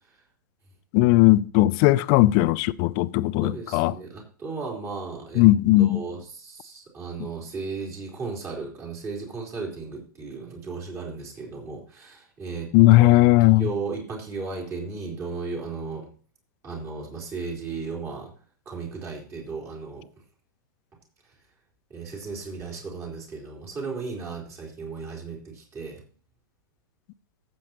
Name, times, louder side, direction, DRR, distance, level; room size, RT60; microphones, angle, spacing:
voice 1, 0.9-3.9 5.4-6.0 12.7-13.7, left 18 dB, 40° left, 0.4 m, -18 dB
voice 2, 3.4-5.4 5.8-13.1 13.5-16.1 16.6-18.3 18.7-20.1 21.9-26.0, right 4 dB, 25° right, 3.8 m, -35 dB
14.5 x 7.6 x 2.9 m
figure-of-eight pair, 105°, 11 cm